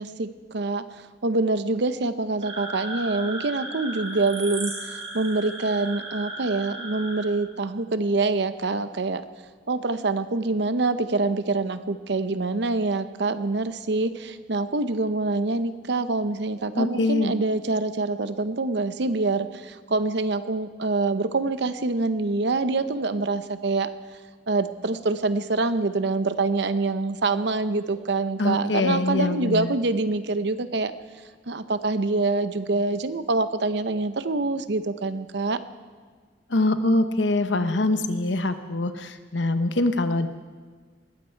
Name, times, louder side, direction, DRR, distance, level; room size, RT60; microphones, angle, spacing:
voice 1, 0.0-9.2 9.7-23.9 24.5-30.9 31.5-35.6, right 3 dB, 70° right, 11 dB, 0.8 m, -25 dB
sound 1, 2.4-7.2, right 2 dB, 35° right, 6.8 m, -35 dB
voice 2, 16.7-17.3 28.4-29.7 36.5-40.3, left 2 dB, 85° left, 9 dB, 1.0 m, -24 dB
20.5 x 15.5 x 4.6 m, 1.5 s
head